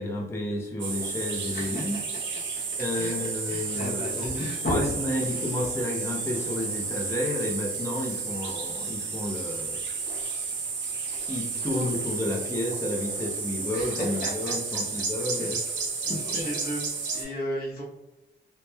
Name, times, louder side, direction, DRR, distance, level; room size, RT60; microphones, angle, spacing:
voice 1, 0.0-2.0 2.8-9.8 11.3-15.6 16.1-16.4, left 1 dB, 15° left, 0 dB, 0.4 m, -31 dB
sound 1, 0.8-17.2, right 4 dB, 90° right, 0.6 m, -32 dB
voice 2, 1.5-2.2 2.5-2.6 2.9-4.9 5.3-5.4 13.7-14.5 15.0-15.1 15.4-15.5 16.0-16.8 17.1-17.8, equal, 55° left, -4 dB, 0.9 m, -34 dB
2.8 x 2.0 x 2.2 m, 1.0 s
wide cardioid pair, 125°, 19 cm